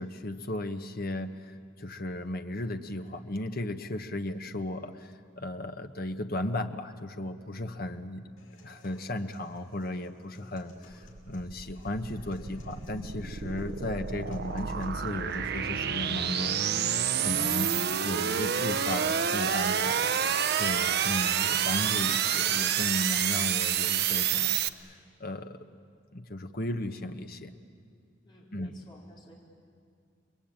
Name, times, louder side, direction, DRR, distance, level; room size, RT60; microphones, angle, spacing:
voice 1, 0.0-8.3 8.6-16.6 16.9-17.7 18.0-20.1 20.5-25.6 26.1-27.5 28.5-28.7, left 1 dB, 50° left, 7 dB, 1.2 m, -35 dB
sound 1, 8.4-24.4, left 1 dB, 80° left, 6.6 m, -56 dB
sound 2, 10.9-24.7, right 8 dB, 55° right, 0.8 m, -28 dB
voice 2, 28.2-29.3, left 1 dB, 25° left, -5 dB, 4.4 m, -55 dB
29.5 x 22.0 x 8.9 m, 2.3 s
head